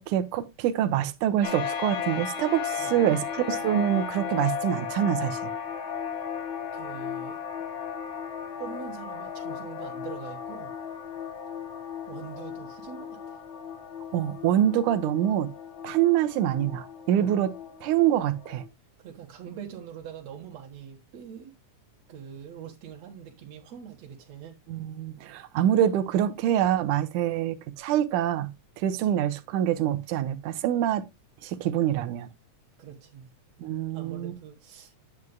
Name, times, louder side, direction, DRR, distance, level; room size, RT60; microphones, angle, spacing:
voice 1, 0.0-5.5 14.1-15.5 15.8-17.5 17.8-18.6 24.7-31.0 31.4-32.3 33.6-34.4, right 11 dB, 85° right, 2.3 m, -25 dB
sound 1, 1.4-18.7, left 7 dB, 45° left, 2.2 m, -35 dB
voice 2, 2.7-3.0 6.7-7.4 8.6-10.7 12.1-13.4 17.1-17.3 19.0-21.5 22.1-24.6 29.2-29.3 32.8-33.3 33.9-34.9, right 8 dB, 65° right, 2.5 m, -43 dB
9.6 x 9.2 x 2.3 m
omnidirectional pair, 3.5 m